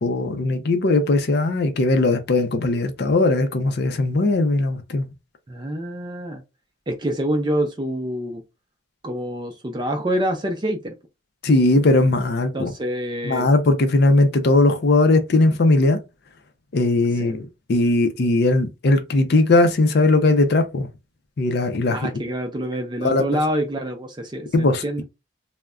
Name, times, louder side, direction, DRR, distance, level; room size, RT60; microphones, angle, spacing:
voice 1, 0.0-5.1 11.4-12.7 13.2-16.0 16.7-20.9 21.4-22.0 23.0-23.2 24.5-24.8, left 2 dB, 50° left, 0.4 m, -19 dB
voice 2, 5.5-6.4 6.9-8.4 9.0-10.9 12.5-13.5 17.2-17.4 21.9-25.0, right 1 dB, 20° right, 0.4 m, -26 dB
2.2 x 2.1 x 3.5 m
head